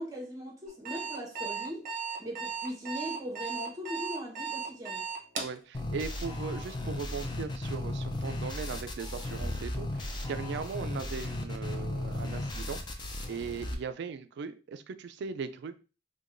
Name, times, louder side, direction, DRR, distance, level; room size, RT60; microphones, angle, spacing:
voice 1, 0.0-1.9 2.2-5.1, equal, 20° right, 0.9 m, -39 dB
Alarm, 0.7-5.6, right 5 dB, 45° right, 0.8 m, -36 dB
voice 2, 5.4-12.8 13.3-15.7, right 5 dB, 65° right, 0.3 m, -39 dB
sound 1, 5.7-13.7, left 1 dB, 25° left, 0.5 m, -35 dB
4.5 x 2.2 x 2.5 m
head